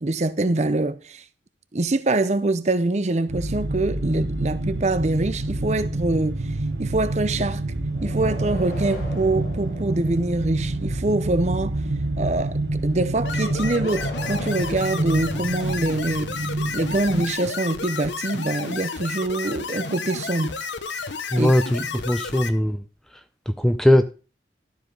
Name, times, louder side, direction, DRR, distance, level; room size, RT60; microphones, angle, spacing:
voice 1, 0.0-1.2 1.7-6.4 6.8-7.6 8.0-11.8 12.2-16.4 16.7-20.6 21.4-21.5, right 2 dB, 40° right, 0.6 m, -24 dB
sound 1, 3.3-17.3, right 2 dB, 85° right, 1.3 m, -28 dB
sound 2, 7.9-10.7 13.3-16.0, left 1 dB, 65° left, 3.7 m, -40 dB
sound 3, 13.2-22.5, left 5 dB, 85° left, 1.0 m, -32 dB
voice 2, 21.3-22.8 23.5-24.1, left 1 dB, ahead, 0.5 m, -20 dB
12.5 x 5.0 x 5.3 m
head